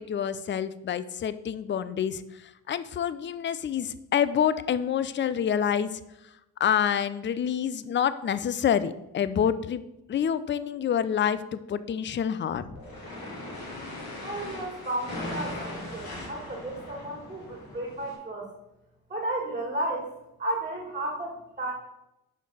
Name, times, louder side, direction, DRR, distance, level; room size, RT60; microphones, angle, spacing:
voice 1, 0.0-6.0 6.6-9.8 10.1-12.6, left 8 dB, 30° left, 14 dB, 0.5 m, -27 dB
sound 1, 12.5-18.1, left 1 dB, 65° left, 2.1 m, -39 dB
voice 2, 14.2-18.5 19.1-20.1 20.4-21.7, right 1 dB, 20° right, 0 dB, 1.8 m, -33 dB
5.7 x 4.7 x 5.4 m, 0.90 s
hypercardioid pair, 50°, 39 cm